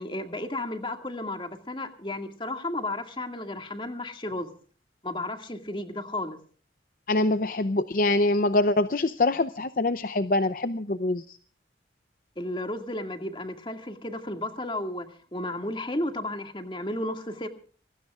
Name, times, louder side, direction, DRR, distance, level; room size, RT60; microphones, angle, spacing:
voice 1, 0.0-4.5 5.0-6.4 12.4-17.5, left 1 dB, 25° left, 6 dB, 2.1 m, -33 dB
voice 2, 7.1-11.4, left 2 dB, 50° left, 12 dB, 0.6 m, -24 dB
26.0 x 20.0 x 2.4 m, 0.42 s
head